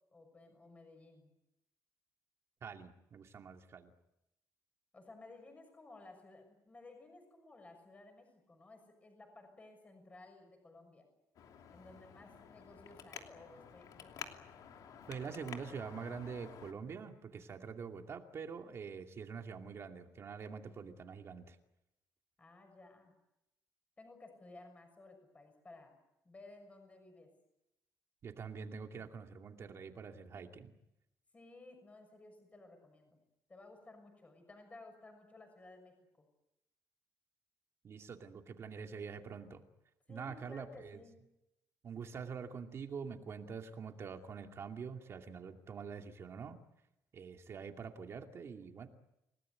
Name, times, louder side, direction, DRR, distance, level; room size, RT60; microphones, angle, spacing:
voice 1, 0.1-1.3 4.9-11.1 11.7-14.4 17.5-17.7 22.4-23.1 24.0-26.0 26.2-27.4 29.0-29.1 31.3-33.2 33.5-36.3 40.1-41.2, left 2 dB, 20° left, 5 dB, 6.5 m, -56 dB
voice 2, 2.6-3.9 15.1-21.6 28.2-30.7 37.8-39.6 40.1-41.0 41.8-46.6 47.1-48.9, right 6 dB, 40° right, 4 dB, 2.5 m, -45 dB
Traffic noise roadway noise, 11.3-16.7, left 8 dB, 70° left, 2.9 m, -51 dB
29.0 x 18.5 x 9.6 m, 0.89 s
cardioid pair, 145°, 7 cm